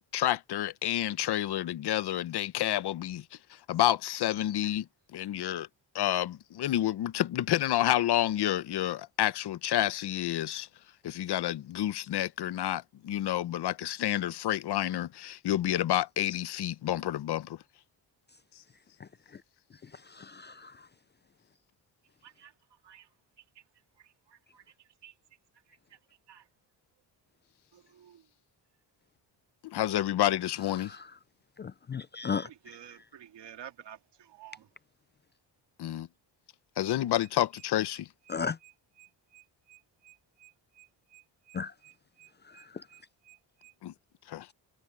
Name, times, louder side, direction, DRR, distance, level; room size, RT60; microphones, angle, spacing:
voice 1, 0.1-3.2 3.7-4.9 5.1-5.7 5.9-10.7 11.0-17.6 29.6-31.0 35.8-36.1 36.8-38.1 43.8-43.9 44.3-44.5, left 13 dB, 65° left, 0.8 m, -29 dB
voice 2, 20.2-20.7 31.6-32.5 38.3-38.6 41.5-41.7, left 6 dB, 25° left, 0.4 m, -34 dB
voice 3, 24.0-24.6 25.0-25.1 26.3-26.4 27.7-28.2 32.4-34.7, right 10 dB, 75° right, 2.4 m, -51 dB
sound 1, 37.2-43.8, right 16 dB, 15° right, 4.3 m, -58 dB
cardioid pair, 130°, 42 cm